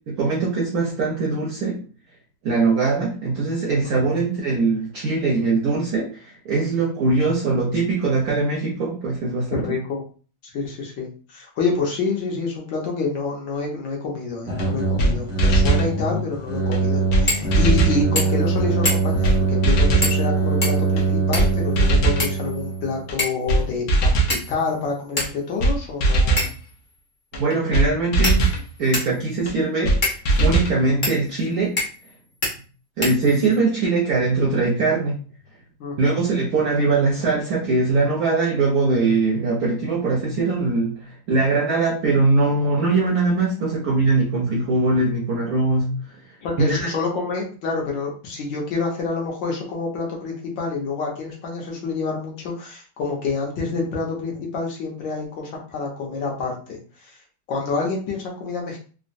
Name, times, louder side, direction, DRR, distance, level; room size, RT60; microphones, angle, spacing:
voice 1, 0.2-1.8 2.4-9.8 27.3-28.4 28.8-31.8 33.0-35.2 36.0-46.2 46.6-46.9, right 3 dB, 75° right, -1 dB, 0.8 m, -21 dB
voice 2, 3.8-4.2 9.5-10.0 10.4-24.2 24.5-26.5 35.8-36.2 46.4-57.2 57.5-58.8, left 4 dB, 65° left, -1 dB, 1.4 m, -27 dB
sound 1, 14.4-23.0, right 4 dB, 5° right, 0.7 m, -23 dB
sound 2, 14.6-14.7 15.0-15.1 15.4-15.9 16.7-16.8 17.1-17.2 17.5-18.0 18.8-18.9 19.2-19.4 19.6-20.1 21.0-21.1 21.3-21.5 21.8-22.2 23.1-23.2 23.5-23.6 23.9-24.4 25.2-25.3 25.6-25.7 26.0-26.5 27.3-27.4 27.7-27.9 28.1-28.6 29.5-29.6 29.8-30.0 30.2-30.7, right 2 dB, 80° left, 0.8 m, -19 dB
sound 3, 17.3-17.5 17.8-17.9 18.1-18.5 18.8-19.2 20.0-20.3 20.6-21.6 22.2-22.8 23.2-23.5 24.3-24.7 25.2-25.3 26.4-26.7 27.5-27.6 28.2-29.2 30.0-30.2 31.0-31.2 31.8-32.1 32.4-32.5 33.0-33.6, left 1 dB, 40° left, 0.6 m, -26 dB
3.7 x 2.1 x 2.5 m, 0.38 s
omnidirectional pair, 2.3 m